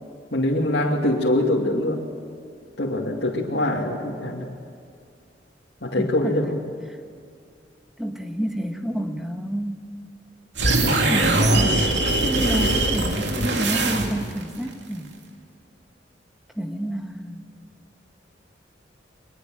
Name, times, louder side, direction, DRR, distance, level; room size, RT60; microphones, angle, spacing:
voice 1, 0.3-2.1 2.8-4.5 5.8-6.6 10.6-11.0, left 1 dB, 65° left, -3 dB, 2.5 m, -24 dB
voice 2, 6.0-6.5 8.0-9.8 11.1-11.8 12.2-15.1 16.6-17.4, equal, ahead, 4 dB, 1.6 m, -29 dB
sound 1, 10.6-14.4, right 2 dB, 70° right, 2.8 m, -21 dB
23.0 x 21.5 x 7.8 m, 2.4 s
head